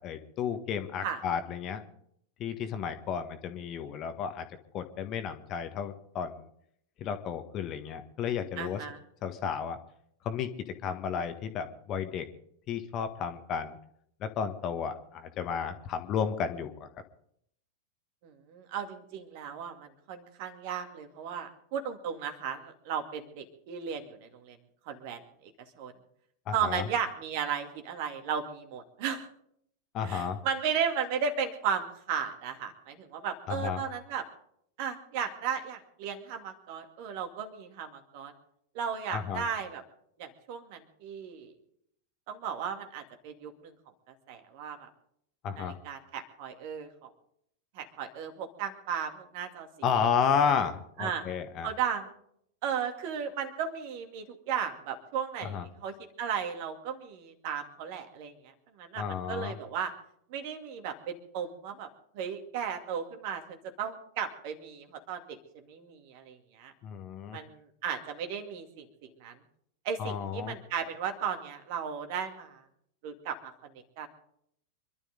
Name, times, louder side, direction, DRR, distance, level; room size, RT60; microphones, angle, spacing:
voice 1, 0.0-1.8 2.4-4.5 4.7-6.5 7.0-8.8 9.2-9.8 10.2-10.5 10.8-12.3 12.7-13.8 14.2-16.9 26.5-26.8 29.9-30.4 33.5-33.8 39.1-39.4 45.4-45.7 49.8-51.7 55.4-55.7 59.0-59.5 66.8-67.4 70.0-70.6, left 7 dB, 35° left, 9 dB, 1.5 m, -32 dB
voice 2, 8.6-9.0 18.2-24.6 24.9-25.5 25.8-25.9 26.5-29.3 30.0-34.2 34.8-38.3 38.7-39.8 40.2-41.5 42.3-43.7 44.3-44.9 45.6-47.1 47.7-49.7 49.9-50.1 51.0-51.2 51.6-52.1 52.6-59.9 60.3-61.9 62.1-66.7 67.3-69.4 69.8-72.6 73.0-74.1, right 7 dB, 45° right, 6 dB, 2.3 m, -35 dB
25.5 x 12.5 x 3.9 m, 0.70 s
figure-of-eight pair, 90°, 0 cm